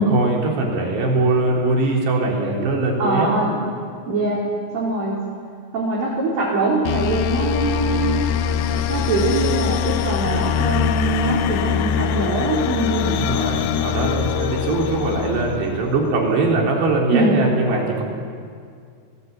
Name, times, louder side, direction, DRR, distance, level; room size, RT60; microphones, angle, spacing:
voice 1, 0.0-3.3 13.0-18.0, right 2 dB, 80° right, -1 dB, 6.1 m, -21 dB
voice 2, 3.0-3.6 4.1-4.4 4.7-5.2 5.7-8.2 8.9-13.2 17.1-17.4, right 2 dB, 55° right, -6 dB, 5.8 m, -22 dB
sound 1, 6.9-16.3, left 8 dB, 85° left, 3.2 m, -23 dB
30.0 x 19.5 x 8.7 m, 2.2 s
omnidirectional pair, 4.9 m